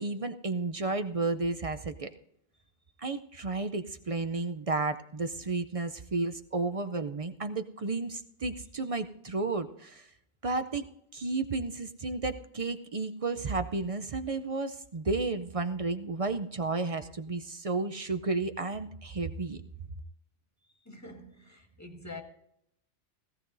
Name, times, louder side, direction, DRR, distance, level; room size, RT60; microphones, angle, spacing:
voice 1, 0.0-2.1 3.0-10.1 10.4-10.8 11.1-19.6, right 3 dB, 45° right, 0.5 m, -32 dB
voice 2, 20.8-22.2, left 2 dB, 15° left, 1.7 m, -46 dB
18.0 x 15.5 x 2.6 m
omnidirectional pair, 1.2 m